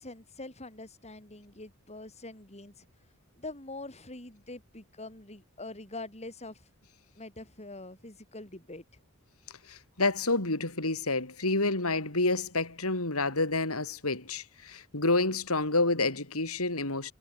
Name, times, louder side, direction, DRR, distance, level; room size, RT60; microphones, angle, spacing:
voice 1, 0.0-2.9 3.3-6.7 7.1-9.0, left 2 dB, 30° left, 6.7 m, -44 dB
voice 2, 9.7-17.1, left 2 dB, 75° left, 5.8 m, -29 dB
head